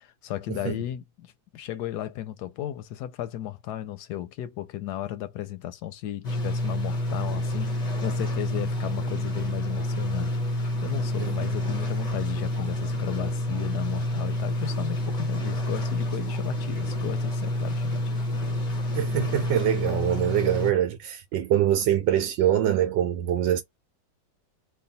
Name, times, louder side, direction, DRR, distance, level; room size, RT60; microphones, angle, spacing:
voice 1, 0.0-18.6 20.5-20.6, left 12 dB, 75° left, 1.0 m, -35 dB
sound 1, 6.2-20.7, left 1 dB, 40° left, 0.5 m, -28 dB
voice 2, 18.9-23.6, right 11 dB, 85° right, 1.3 m, -24 dB
3.2 x 2.3 x 4.0 m
omnidirectional pair, 2.0 m